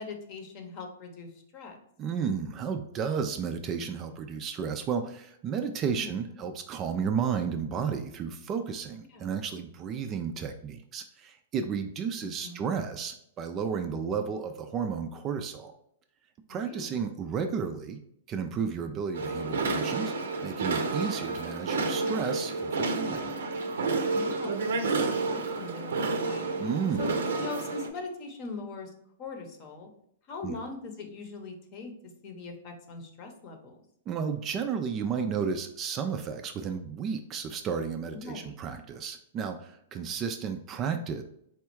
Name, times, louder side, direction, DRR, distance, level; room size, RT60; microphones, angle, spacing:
voice 1, 0.0-1.8 6.0-6.4 9.1-9.2 12.2-12.7 16.5-17.0 20.8-20.9 24.1-26.5 27.0-28.9 29.2-29.9 30.3-33.8 38.1-38.5, left 3 dB, 35° left, 4 dB, 0.8 m, -41 dB
voice 2, 2.0-15.7 16.5-18.0 18.3-20.1 20.4-23.3 26.6-27.1 30.4-30.6 34.1-41.2, right 6 dB, 25° right, 7 dB, 0.3 m, -32 dB
sound 1, 19.1-27.9, right 3 dB, 80° right, 0.6 m, -30 dB
4.2 x 2.3 x 4.5 m, 0.72 s
hypercardioid pair, 145°, 0 cm